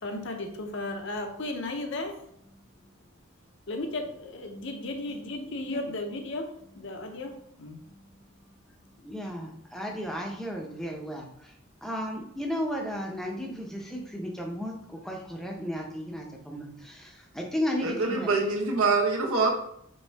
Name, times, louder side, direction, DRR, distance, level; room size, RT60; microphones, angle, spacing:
voice 1, 0.0-2.9 3.7-8.9, left 2 dB, 60° left, 4 dB, 0.7 m, -36 dB
voice 2, 9.0-11.3 11.8-18.3, equal, ahead, 0 dB, 0.6 m, -34 dB
voice 3, 17.8-19.5, right 3 dB, 85° right, 1 dB, 1.0 m, -25 dB
5.3 x 2.7 x 3.4 m, 0.70 s
head